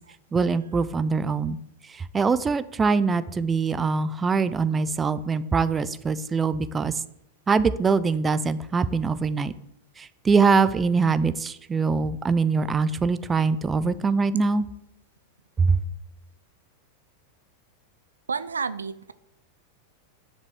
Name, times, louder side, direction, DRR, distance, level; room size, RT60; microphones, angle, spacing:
voice 1, 0.3-1.6 2.1-6.9 7.5-9.5 10.0-14.6 15.6-15.8, right 4 dB, 15° right, 14 dB, 0.5 m, -23 dB
voice 2, 18.3-19.1, right 5 dB, 75° right, 14 dB, 0.4 m, -30 dB
10.0 x 5.2 x 8.0 m, 0.80 s
figure-of-eight pair, 90°, 0 cm